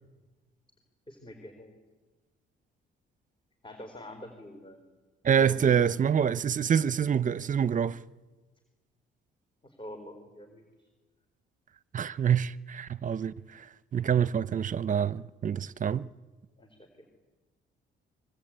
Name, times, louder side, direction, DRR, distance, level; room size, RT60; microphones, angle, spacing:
voice 1, 1.1-1.7 3.6-4.8 5.3-5.7 9.6-10.9 16.6-17.1, left 1 dB, 25° left, 4.3 m, -45 dB
voice 2, 5.2-8.0 11.9-13.7 13.9-16.1, right 8 dB, 40° right, 0.8 m, -26 dB
25.0 x 23.0 x 9.0 m
cardioid pair, 90°, 20 cm